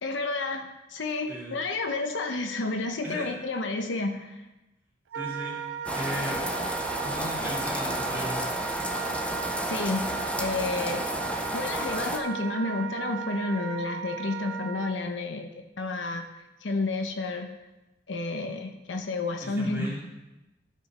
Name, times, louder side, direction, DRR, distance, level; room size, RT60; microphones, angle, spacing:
voice 1, 0.0-4.4 9.7-10.0 10.4-11.1 11.5-15.5 15.8-16.2 16.6-17.5 18.1-19.9, left 3 dB, 80° left, 5 dB, 0.8 m, -30 dB
voice 2, 1.3-1.6 3.0-3.3 5.1-5.7 5.9-6.5 7.0-8.4 19.4-20.0, equal, 10° right, -7 dB, 2.7 m, -36 dB
Wind instrument woodwind instrument, 5.1-15.0, right 8 dB, 75° right, 0.4 m, -36 dB
sound 1, 5.9-12.2, equal, 5° left, 0.6 m, -32 dB
12.5 x 5.2 x 4.3 m, 1.0 s
head